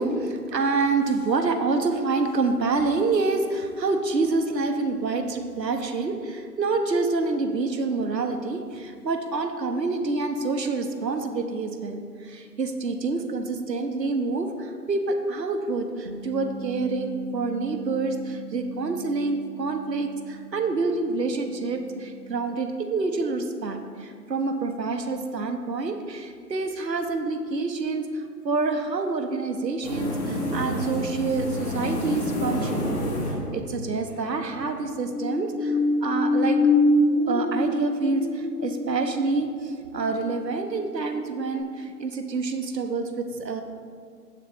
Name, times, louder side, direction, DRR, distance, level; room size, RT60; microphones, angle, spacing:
voice 1, 0.0-33.0 33.5-36.6 37.3-43.6, right 3 dB, 80° right, 6 dB, 1.3 m, -27 dB
Bass guitar, 16.1-22.3, right 6 dB, 30° right, 0.5 m, -41 dB
sound 1, 29.8-34.4, equal, 25° left, 2.0 m, -29 dB
sound 2, 35.0-41.2 41.6-41.7, left 2 dB, 10° right, 2.8 m, -25 dB
16.0 x 7.3 x 3.0 m, 2.1 s
figure-of-eight pair, 150°, 49 cm